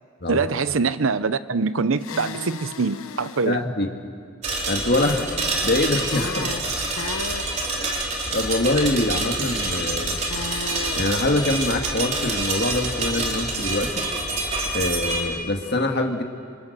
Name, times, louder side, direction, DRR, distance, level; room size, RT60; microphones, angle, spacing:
voice 1, 0.3-3.6, right 4 dB, 70° right, 14 dB, 0.7 m, -24 dB
sound 1, 2.0-3.5 6.0-7.5 10.1-11.1, left 4 dB, 85° left, 1.2 m, -34 dB
voice 2, 3.5-3.9 4.7-6.5 7.8-7.9 8.3-10.2 11.0-14.0 14.7-16.2, left 2 dB, 50° left, 3 dB, 2.2 m, -24 dB
sound 2, 4.4-15.2, right 2 dB, 30° right, 3.2 m, -27 dB
27.5 x 25.5 x 6.8 m, 2.3 s
head